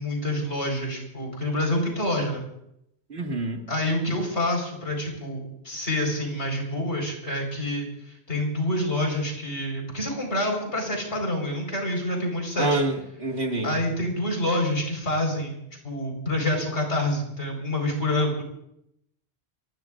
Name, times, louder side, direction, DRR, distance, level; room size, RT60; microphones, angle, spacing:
voice 1, 0.0-2.4 3.7-7.9 8.3-12.8 13.6-15.5 15.8-18.4, left 1 dB, 90° left, 1 dB, 5.0 m, -27 dB
voice 2, 3.1-3.7 12.6-13.8, right 2 dB, 70° right, 2 dB, 2.2 m, -27 dB
29.0 x 17.0 x 2.5 m, 0.78 s
omnidirectional pair, 1.1 m